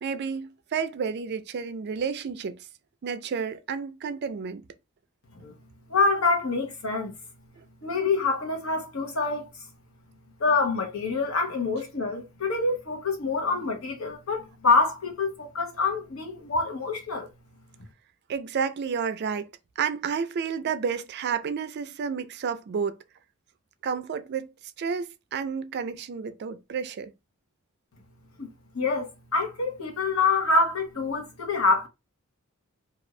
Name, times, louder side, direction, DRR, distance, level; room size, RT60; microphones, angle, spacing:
voice 1, 0.0-2.6 3.0-4.6 7.6-7.7 18.3-19.5 19.8-23.0 23.8-24.5 24.8-27.1, right 6 dB, 50° right, 0.4 m, -31 dB
voice 2, 5.9-7.1 7.8-9.5 10.4-17.3 28.4-28.5 28.7-31.9, left 3 dB, 70° left, 1.0 m, -26 dB
2.6 x 2.4 x 3.0 m
head